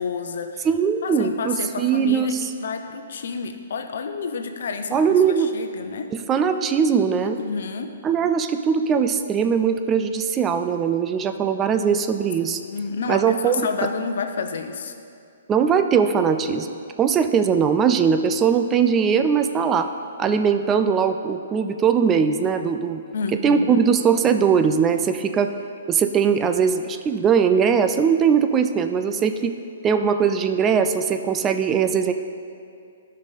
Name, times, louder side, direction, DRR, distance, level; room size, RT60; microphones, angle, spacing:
voice 1, 0.0-0.7 1.0-5.0 5.4-6.1 7.2-7.9 12.4-15.0 23.1-23.8, left 5 dB, 65° left, 7 dB, 0.7 m, -30 dB
voice 2, 0.6-2.4 4.9-5.5 6.1-7.4 8.0-12.6 13.1-13.7 15.5-19.9 20.2-23.0 23.4-25.5 25.9-29.5 29.8-32.1, right 6 dB, 20° right, 8 dB, 0.4 m, -20 dB
12.5 x 5.5 x 4.1 m, 2.5 s
hypercardioid pair, 140°, 0 cm